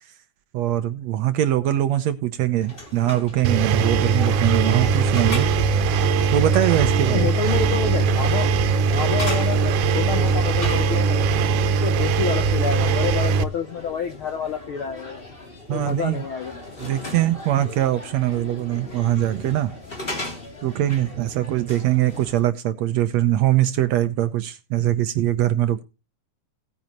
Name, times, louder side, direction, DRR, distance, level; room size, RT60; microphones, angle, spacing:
voice 1, 0.5-5.5 6.3-7.3 15.7-16.2 16.8-19.7 20.6-25.8, right 13 dB, 70° right, 1.8 m, -22 dB
sound 1, 2.6-22.5, left 2 dB, 15° left, 2.9 m, -38 dB
Engine, 3.4-13.4, right 5 dB, 85° right, 2.4 m, -20 dB
voice 2, 7.0-8.5 8.9-11.2 11.8-15.2 15.7-16.5, left 7 dB, 65° left, 1.3 m, -28 dB
18.0 x 9.4 x 3.0 m
omnidirectional pair, 3.6 m